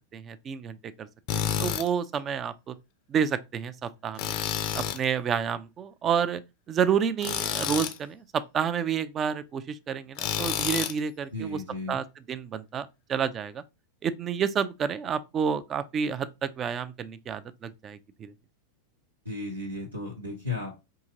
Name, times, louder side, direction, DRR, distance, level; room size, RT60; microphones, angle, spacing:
voice 1, 0.1-1.1 1.6-2.8 3.1-4.4 4.8-6.4 6.7-11.6 11.9-13.6 14.0-18.3, right 7 dB, 25° right, 0.3 m, -29 dB
Tools, 1.3-1.9 4.2-5.0 7.2-8.0 10.2-11.0, left 10 dB, 40° left, 0.5 m, -29 dB
voice 2, 11.3-12.0 19.2-20.8, left 2 dB, 85° right, 0.8 m, -34 dB
4.7 x 2.8 x 2.6 m
figure-of-eight pair, 90°, 0 cm